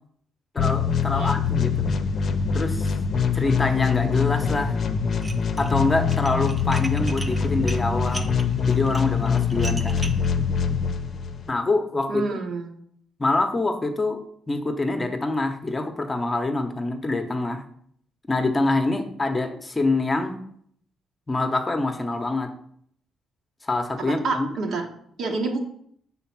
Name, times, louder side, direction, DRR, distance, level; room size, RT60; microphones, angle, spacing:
voice 1, 0.5-1.8 2.5-2.9 3.3-4.8 5.6-8.3 8.7-10.0 11.5-12.4 13.2-14.2 14.5-17.6 18.3-20.4 21.3-22.5 23.6-24.5, left 2 dB, 25° left, 5 dB, 0.8 m, -25 dB
sound 1, 0.6-11.5, left 6 dB, 55° left, 0.6 m, -24 dB
Dishes pots and pans, 5.1-5.7 6.0-10.3, right 1 dB, 15° right, 0.6 m, -37 dB
voice 2, 12.1-12.7 24.1-24.9 25.2-25.6, right 3 dB, 70° right, 2 dB, 1.2 m, -28 dB
5.1 x 3.9 x 5.9 m, 0.65 s
cardioid pair, 90°, 0 cm